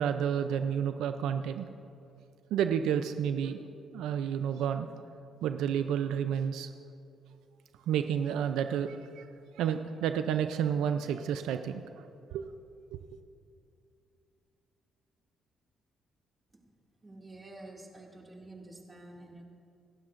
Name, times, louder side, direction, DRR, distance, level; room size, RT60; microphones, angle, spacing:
voice 1, 0.0-1.7 2.5-3.7 3.9-5.0 5.4-6.7 7.9-9.3 9.5-12.0 12.3-12.4 12.9-13.0, right 8 dB, 90° right, 8 dB, 0.4 m, -30 dB
voice 2, 17.0-19.4, right 2 dB, 25° right, -1 dB, 2.3 m, -49 dB
27.0 x 12.0 x 2.6 m, 2.5 s
cardioid pair, 90°, 0 cm